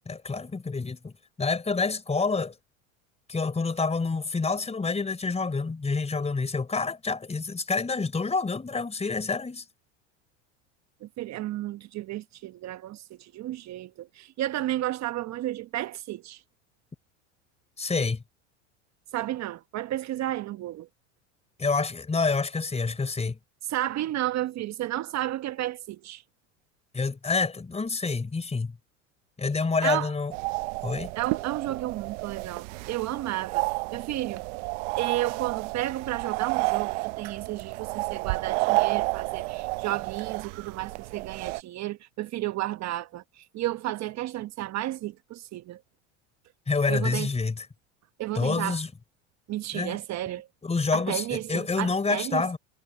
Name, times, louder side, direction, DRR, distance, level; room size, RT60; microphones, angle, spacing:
voice 1, 0.1-1.1 1.4-2.5 3.3-9.6 17.8-18.2 21.6-23.4 26.9-28.7 29.4-30.3 30.8-31.1 46.7-47.6 48.3-48.9 49.7-50.0 50.6-52.6, left 4 dB, 15° left, 4.1 m, -27 dB
voice 2, 11.0-16.4 19.1-20.9 23.7-26.2 29.8-30.1 31.2-34.5 35.0-45.8 46.9-47.3 48.2-48.8 49.5-50.5 50.9-52.4, right 14 dB, 45° right, 1.2 m, -32 dB
sound 1, 30.3-41.6, right 25 dB, 70° right, 1.0 m, -31 dB
hypercardioid pair, 90°, 37 cm